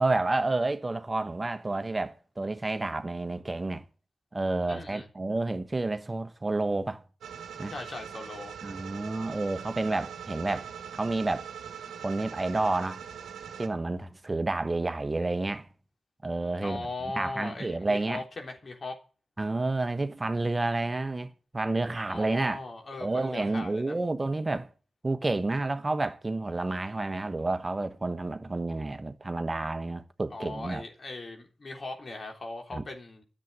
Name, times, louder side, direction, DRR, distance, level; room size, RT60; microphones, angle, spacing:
voice 1, 0.0-3.8 4.3-7.0 7.6-7.7 8.6-11.5 12.0-13.0 13.6-15.7 16.2-16.9 17.1-18.2 19.4-22.6 23.0-24.7 25.0-30.8 32.7-32.8, right 2 dB, 30° right, 1.2 m, -30 dB
voice 2, 4.7-5.1 7.7-8.5 16.6-19.0 22.1-24.0 30.3-33.2, left 3 dB, 55° left, 3.5 m, -39 dB
sound 1, 7.2-13.7, right 8 dB, 80° right, 1.0 m, -42 dB
10.5 x 7.5 x 9.7 m
supercardioid pair, 40°, 0 cm